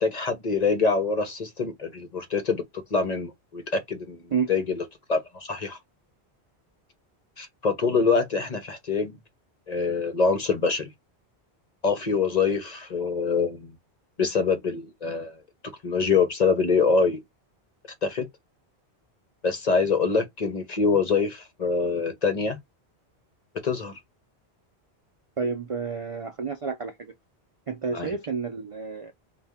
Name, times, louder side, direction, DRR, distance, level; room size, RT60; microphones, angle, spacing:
voice 1, 0.0-4.2 4.5-4.8 5.1-5.8 7.4-9.1 9.7-10.9 11.8-13.7 14.2-15.4 15.8-17.2 18.0-18.3 19.4-22.6 23.6-24.0 27.9-28.1, left 4 dB, 45° left, 0.8 m, -25 dB
voice 2, 25.4-27.1 27.7-29.1, right 5 dB, 50° right, 0.4 m, -30 dB
4.1 x 2.3 x 3.5 m
omnidirectional pair, 1.1 m